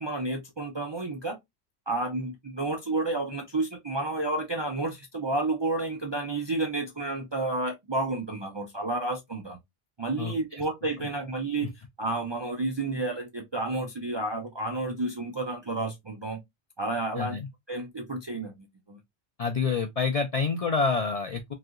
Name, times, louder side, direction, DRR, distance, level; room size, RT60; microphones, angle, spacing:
voice 1, 0.0-1.4 1.9-9.6 10.0-16.4 16.8-17.4 17.7-18.5 18.9-19.0, right 2 dB, 45° right, 0.3 m, -31 dB
voice 2, 10.2-10.6 17.1-17.5 19.4-21.5, left 4 dB, 60° left, 0.4 m, -28 dB
3.2 x 2.7 x 2.4 m
omnidirectional pair, 1.1 m